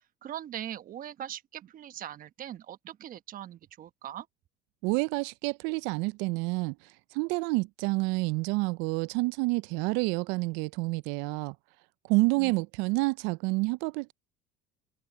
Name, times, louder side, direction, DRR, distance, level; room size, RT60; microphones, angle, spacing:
voice 1, 0.2-4.3 12.3-12.5, right 11 dB, 45° right, 1.2 m, -41 dB
voice 2, 4.8-11.6 12.1-14.1, right 25 dB, 70° right, 0.6 m, -29 dB
hypercardioid pair, 75°, 19 cm